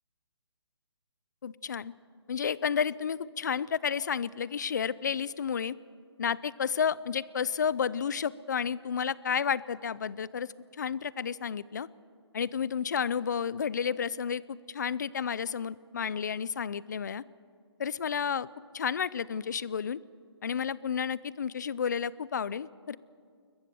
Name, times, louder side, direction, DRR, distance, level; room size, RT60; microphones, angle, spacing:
voice 1, 1.4-1.9 2.3-5.8 6.2-11.9 12.3-17.2 17.8-18.5 18.7-20.0 20.4-23.0, left 7 dB, 40° left, 21 dB, 0.4 m, -31 dB
22.0 x 20.0 x 6.9 m, 2.2 s
hypercardioid pair, 175°, 14 cm